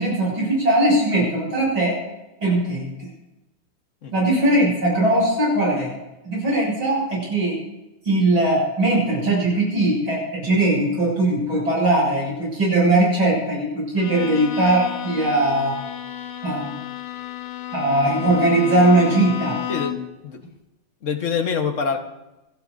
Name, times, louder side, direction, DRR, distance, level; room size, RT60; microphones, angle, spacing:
voice 1, 0.0-2.0 2.4-3.1 4.1-6.0 6.3-7.6 8.0-15.8 16.4-16.7 17.7-19.6, right 1 dB, 65° right, -4 dB, 7.5 m, -20 dB
Bowed string instrument, 14.0-20.2, left 11 dB, 85° left, 1.9 m, -32 dB
voice 2, 19.7-20.5 21.0-22.0, left 6 dB, 45° left, 5 dB, 1.2 m, -26 dB
26.0 x 12.5 x 2.6 m, 1.0 s
omnidirectional pair, 2.4 m